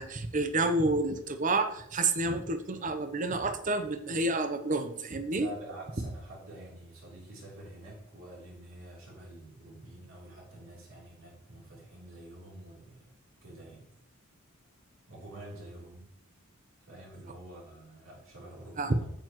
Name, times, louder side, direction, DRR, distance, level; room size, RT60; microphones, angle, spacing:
voice 1, 0.0-5.5 18.8-19.0, right 2 dB, 35° right, 9 dB, 0.7 m, -29 dB
voice 2, 5.4-13.1 13.4-13.9 15.1-16.1 16.8-19.1, right 1 dB, 65° right, -4 dB, 3.3 m, -47 dB
9.0 x 8.0 x 3.1 m, 0.74 s
head